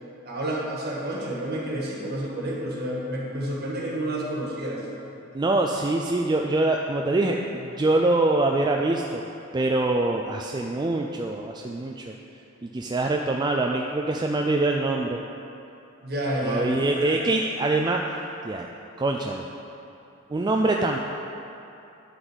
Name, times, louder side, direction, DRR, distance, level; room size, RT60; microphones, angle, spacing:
voice 1, 0.2-4.9 16.0-17.1, right 1 dB, 55° right, -4 dB, 1.7 m, -29 dB
voice 2, 5.3-9.2 9.5-12.1 12.6-15.2 16.4-18.0 18.4-18.7 19.0-19.4 20.3-21.0, right 2 dB, 20° right, 1 dB, 0.3 m, -24 dB
11.0 x 4.0 x 6.2 m, 2.8 s
head